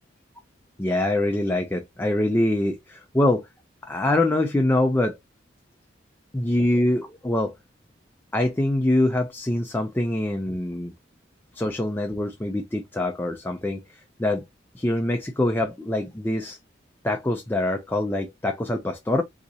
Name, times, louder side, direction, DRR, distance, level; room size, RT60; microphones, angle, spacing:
voice 1, 0.8-3.5 3.8-5.2 6.3-7.6 8.3-10.9 11.5-13.8 14.2-14.4 14.7-16.6 17.0-19.2, left 1 dB, 10° left, 0.4 m, -24 dB
4.0 x 2.4 x 2.6 m
head